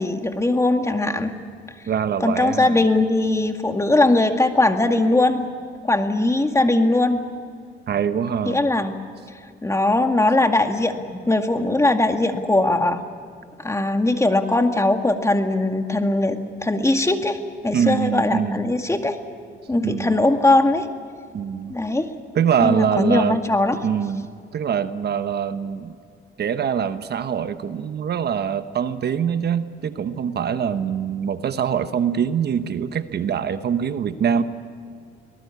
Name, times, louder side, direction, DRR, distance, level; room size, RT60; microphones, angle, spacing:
voice 1, 0.0-1.3 2.2-5.4 5.8-7.2 8.5-9.0 9.6-13.0 13.6-19.2 19.7-20.9 21.7-22.1 22.6-23.8, left 2 dB, 15° left, 6 dB, 2.1 m, -20 dB
voice 2, 1.9-2.8 7.9-8.6 17.7-18.6 19.8-20.2 21.3-21.7 22.3-23.4 23.8-26.0 26.4-34.4, right 8 dB, 55° right, 11 dB, 1.1 m, -24 dB
24.0 x 19.0 x 8.5 m, 2.3 s
cardioid pair, 90°, 20 cm